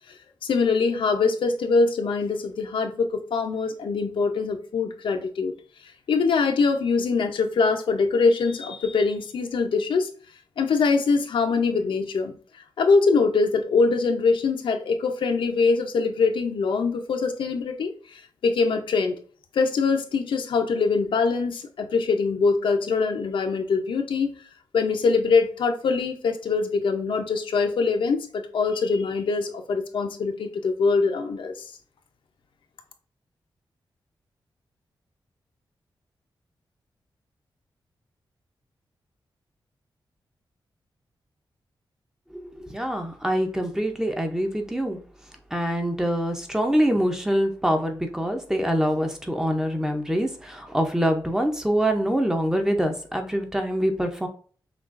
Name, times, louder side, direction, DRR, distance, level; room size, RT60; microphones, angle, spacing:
voice 1, 0.4-5.5 6.1-10.1 10.6-19.2 19.5-24.3 24.7-31.7, left 4 dB, 75° left, 6 dB, 0.6 m, -23 dB
voice 2, 42.3-45.0 45.5-54.3, equal, 5° right, 4 dB, 0.5 m, -25 dB
5.9 x 2.3 x 2.5 m, 0.43 s
wide cardioid pair, 160°, 9 cm